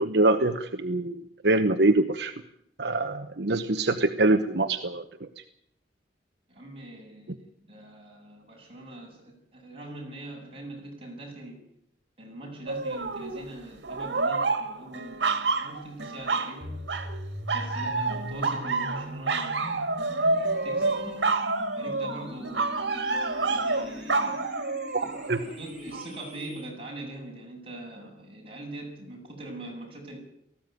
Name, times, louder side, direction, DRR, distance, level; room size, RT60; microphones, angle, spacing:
voice 1, 0.0-2.3 2.8-5.0 24.9-25.4, right 2 dB, 70° right, 7 dB, 1.0 m, -24 dB
voice 2, 6.5-11.6 12.2-16.7 17.5-19.8 20.2-21.2 21.8-22.7 23.4-24.5 25.0-30.2, right 1 dB, 30° right, -1 dB, 7.9 m, -42 dB
sound 1, 12.7-13.4 13.8-16.6 16.9-17.2 17.5-25.4 25.9-26.0, right 3 dB, 85° right, 2.2 m, -28 dB
sound 2, 16.6-26.6, equal, 5° right, 6.8 m, -41 dB
18.5 x 15.5 x 9.3 m, 0.72 s
head